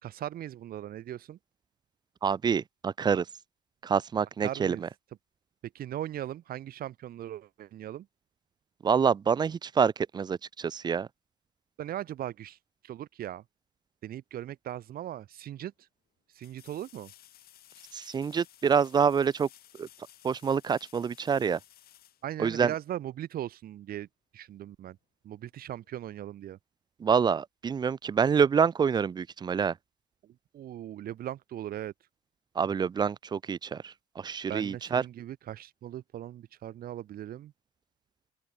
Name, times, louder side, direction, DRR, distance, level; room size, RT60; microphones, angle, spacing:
voice 1, 0.0-1.4 4.4-4.8 5.7-8.1 11.8-12.6 12.8-13.4 14.0-15.9 16.3-17.1 22.2-24.1 24.3-25.0 25.2-26.6 30.5-31.9 34.5-37.5, right 12 dB, 60° right, 2.5 m, -39 dB
voice 2, 2.2-3.2 3.8-4.9 8.8-11.1 17.9-19.5 19.8-19.9 20.2-21.6 22.4-22.7 27.0-29.7 32.6-35.0, right 6 dB, 25° right, 0.4 m, -27 dB
sound 1, 15.0-15.1 16.4-23.0 25.8-25.9, left 12 dB, 65° left, 3.9 m, -57 dB
open air
cardioid pair, 110°, 17 cm